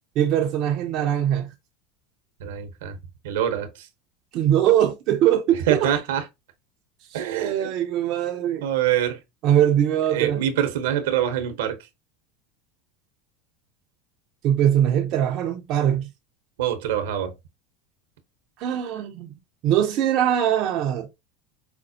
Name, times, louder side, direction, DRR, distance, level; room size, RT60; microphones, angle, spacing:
voice 1, 0.2-1.5 4.3-5.9 7.1-8.6 9.4-10.4 14.4-16.1 18.6-19.3 19.6-21.1, right 10 dB, 55° right, 0.6 m, -22 dB
voice 2, 2.4-3.0 3.2-3.9 5.7-6.2 7.1-7.7 8.6-9.2 10.1-11.8 16.6-17.3, right 10 dB, 80° right, 0.9 m, -25 dB
5.1 x 2.1 x 2.7 m
supercardioid pair, 100°, 0 cm